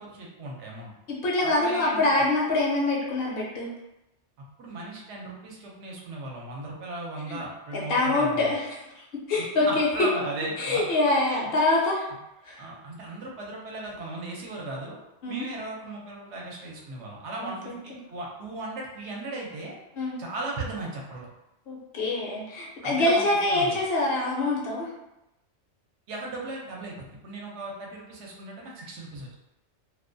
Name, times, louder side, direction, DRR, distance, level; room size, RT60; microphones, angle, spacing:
voice 1, 0.0-0.9 1.4-2.1 4.6-8.5 9.4-10.8 11.3-11.5 12.6-15.0 15.3-19.7 20.2-21.3 22.8-23.8 26.1-29.3, right 2 dB, 75° right, -2 dB, 0.9 m, -37 dB
voice 2, 1.1-3.7 7.3-7.4 7.7-9.9 10.6-12.1 12.4-12.6 15.2-15.5 17.4-17.8 20.0-20.2 21.7-24.9, left 2 dB, 60° left, -3 dB, 0.7 m, -25 dB
2.3 x 2.1 x 2.5 m, 0.92 s
omnidirectional pair, 1.2 m